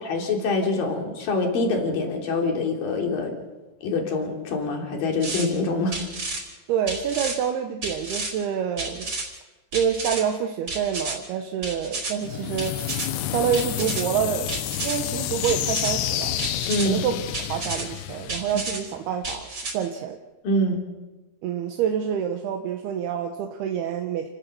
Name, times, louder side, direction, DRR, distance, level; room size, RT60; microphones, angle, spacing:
voice 1, 0.0-3.3 3.8-6.0 16.7-17.0 20.4-20.8, left 2 dB, 60° left, 2 dB, 4.8 m, -25 dB
sound 1, 5.2-5.5 5.9-6.4 6.9-7.4 7.8-8.3 8.8-9.3 9.7-10.2 10.7-11.2 11.6-12.1 12.6-13.1 13.5-14.0 14.5-15.0 15.4-15.9 16.4-16.9 17.3-17.8 18.3-18.8 19.2-19.7, right 2 dB, 30° right, 4.9 m, -31 dB
voice 2, 6.7-9.1 9.7-12.8 13.3-14.5 14.8-16.5 16.9-17.2 17.5-20.2 21.4-24.3, right 8 dB, 80° right, 4 dB, 3.1 m, -27 dB
sound 2, 12.2-19.1, left 12 dB, 85° left, 3.1 m, -30 dB
29.5 x 17.5 x 7.1 m, 1.2 s
omnidirectional pair, 4.6 m